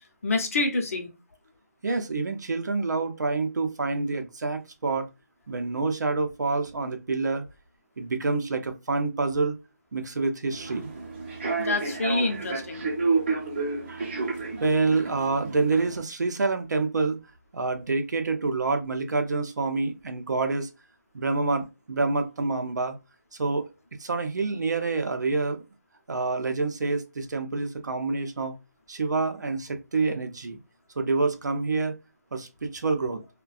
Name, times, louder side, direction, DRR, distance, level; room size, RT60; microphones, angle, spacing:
voice 1, 0.2-1.1 11.6-12.9, left 3 dB, 50° left, 0.7 m, -27 dB
voice 2, 1.8-5.1 5.5-7.4 8.0-9.6 9.9-10.9 13.9-14.1 14.5-17.2 17.5-20.7 21.1-23.0 23.4-23.6 24.0-25.6 26.1-28.5 28.9-30.6 31.0-31.9 32.3-33.2, right 3 dB, 75° right, 0.6 m, -27 dB
Human voice / Subway metro underground, 10.5-16.0, right 4 dB, 40° right, 0.7 m, -30 dB
2.4 x 2.2 x 2.4 m
hypercardioid pair, 170°, 10 cm